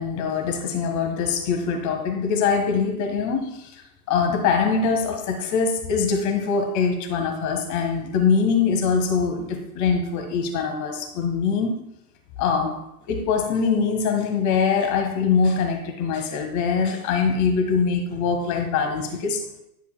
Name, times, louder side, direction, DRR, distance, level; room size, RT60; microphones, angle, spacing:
voice 1, 0.0-3.6 4.1-11.8 12.4-12.8 13.1-19.4, left 5 dB, 35° left, 1.6 m, -23 dB
9.7 x 8.2 x 2.2 m
figure-of-eight pair, 95°, 50 cm